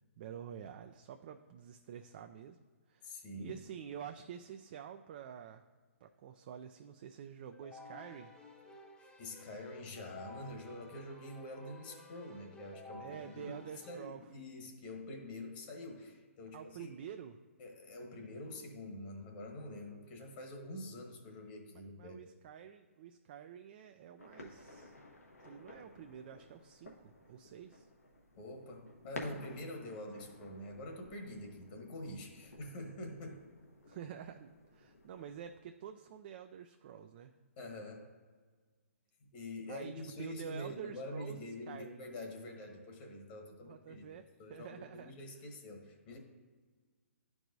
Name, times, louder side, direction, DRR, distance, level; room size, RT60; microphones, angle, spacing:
voice 1, 0.2-2.6 2.9-5.6 6.0-8.3 13.0-14.2 16.5-17.4 22.0-25.0 25.4-27.9 33.9-37.3 39.7-39.9 40.2-42.0 43.6-44.2 44.5-45.1, right 9 dB, 40° right, 6 dB, 0.3 m, -48 dB
voice 2, 3.0-3.6 9.0-16.9 17.6-22.2 28.4-33.4 37.6-38.0 39.2-44.0 44.4-46.2, left 1 dB, 40° left, 2 dB, 1.2 m, -46 dB
Keyboard (musical), 7.5-14.1, left 2 dB, 10° left, 0.8 m, -54 dB
sound 1, 24.2-35.6, left 2 dB, 90° left, 1.2 m, -53 dB
10.5 x 4.7 x 2.7 m, 1.5 s
figure-of-eight pair, 130°, 8 cm